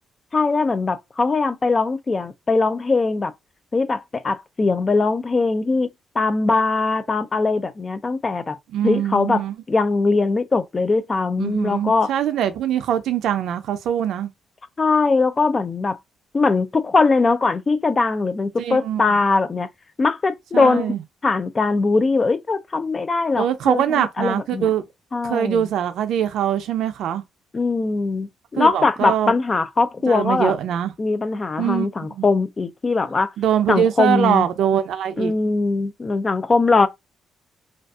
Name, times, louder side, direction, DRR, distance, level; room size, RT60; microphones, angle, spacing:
voice 1, 0.3-3.3 3.7-5.9 6.2-8.6 8.8-12.1 14.8-16.0 16.3-19.7 20.0-21.0 21.2-24.7 25.1-25.7 27.5-30.6 31.0-33.3 33.7-34.5 35.2-36.9, left 3 dB, 30° left, 0.3 m, -21 dB
voice 2, 8.7-9.5 11.4-14.3 18.6-19.0 20.5-21.0 23.3-24.8 25.2-27.2 28.6-29.3 30.1-30.9 31.6-31.9 32.2-32.3 33.4-35.3, right 10 dB, 75° right, 0.4 m, -22 dB
2.5 x 2.3 x 2.3 m
cardioid pair, 90°, 0 cm